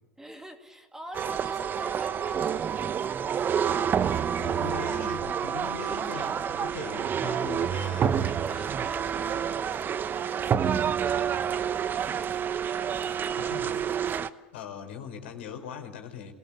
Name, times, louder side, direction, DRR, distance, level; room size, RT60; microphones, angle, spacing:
voice 1, 0.2-3.6 7.8-12.1, right 1 dB, 5° right, 5 dB, 2.6 m, -46 dB
sound 1, 1.1-14.3, right 8 dB, 30° right, 0.9 m, -28 dB
voice 2, 4.4-8.1 13.4-13.8 14.5-16.3, left 7 dB, 75° left, 4 dB, 4.3 m, -40 dB
27.5 x 18.5 x 8.6 m, 1.1 s
hypercardioid pair, 90°, 6 cm